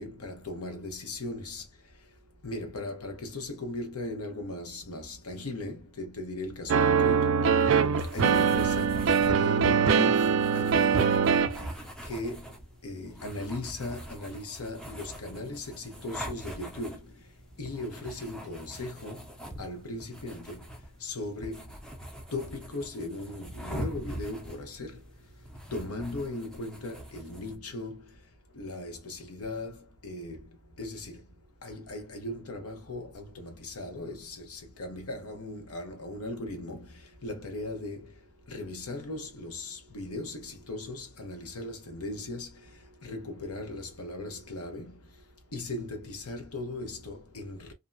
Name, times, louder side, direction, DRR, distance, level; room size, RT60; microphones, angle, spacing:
voice 1, 0.0-1.7 2.4-7.6 8.1-11.4 12.0-17.3 17.6-21.7 22.3-25.2 25.7-28.2 28.5-31.3 31.6-38.2 38.5-45.2 45.5-47.7, left 2 dB, 80° left, 0.8 m, -38 dB
sound 1, 6.7-11.7, right 6 dB, 55° right, 0.3 m, -23 dB
sound 2, 8.0-27.5, equal, 5° left, 0.5 m, -43 dB
2.6 x 2.1 x 2.5 m
head